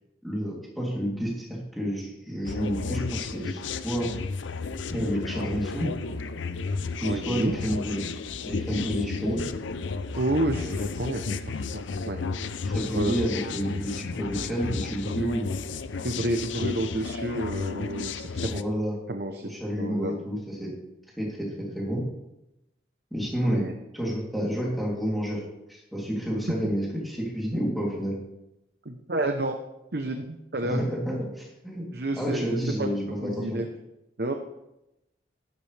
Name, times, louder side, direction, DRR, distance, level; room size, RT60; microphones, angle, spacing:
voice 1, 0.2-1.5 1.7-4.1 4.9-5.9 7.0-8.0 8.4-9.4 12.6-15.5 18.4-19.0 19.4-20.7 21.2-22.0 23.1-23.7 23.9-25.4 25.7-28.1 30.6-31.8 32.2-33.6, equal, ahead, -4 dB, 3.1 m, -29 dB
sound 1, 2.4-18.6, left 4 dB, 90° left, 0.6 m, -33 dB
voice 2, 7.0-7.5 10.2-12.2 13.0-13.2 16.0-18.6 19.1-20.1 23.4-23.7 28.8-29.5 29.9-30.8 31.9-32.5 32.8-32.9 33.2-33.7 34.2-34.3, right 1 dB, 60° right, 5 dB, 0.8 m, -30 dB
12.5 x 12.0 x 3.4 m, 0.90 s
head